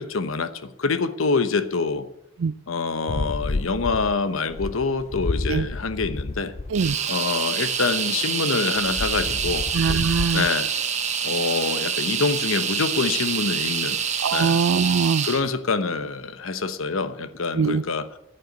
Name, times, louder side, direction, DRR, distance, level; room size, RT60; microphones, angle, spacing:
voice 1, 0.0-2.1 2.7-6.5 7.1-9.6 10.3-10.7 11.2-14.0 14.3-14.6 15.2-18.2, left 4 dB, 75° left, 0.9 m, -26 dB
sound 1, 3.1-7.0 8.8-10.5, left 2 dB, 30° left, 0.4 m, -30 dB
sound 2, 6.7-15.4, right 7 dB, 35° right, 1.1 m, -26 dB
voice 2, 9.7-10.5 14.2-15.3 17.6-17.8, right 5 dB, 70° right, 0.4 m, -22 dB
10.0 x 9.2 x 8.0 m
head